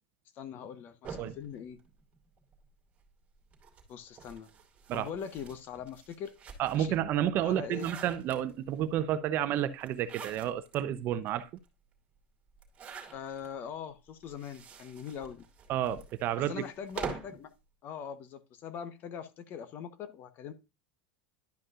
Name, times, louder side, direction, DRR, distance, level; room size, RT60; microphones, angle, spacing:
voice 1, 0.4-1.8 3.9-4.5 4.9-6.3 6.7-7.0 7.4-7.9 13.1-15.4 16.5-17.5 17.8-20.5, left 8 dB, 40° left, 1.0 m, -42 dB
sound 1, 1.0-2.6 3.5-6.9 7.4-8.8 9.8-10.8 11.3-11.4 11.6-11.7 12.6-13.5 14.2-17.4, right 6 dB, 25° right, 2.3 m, -45 dB
voice 2, 6.6-11.5 15.7-16.6, right 11 dB, 45° right, 0.7 m, -30 dB
11.5 x 5.2 x 2.5 m
supercardioid pair, 130°, 5 cm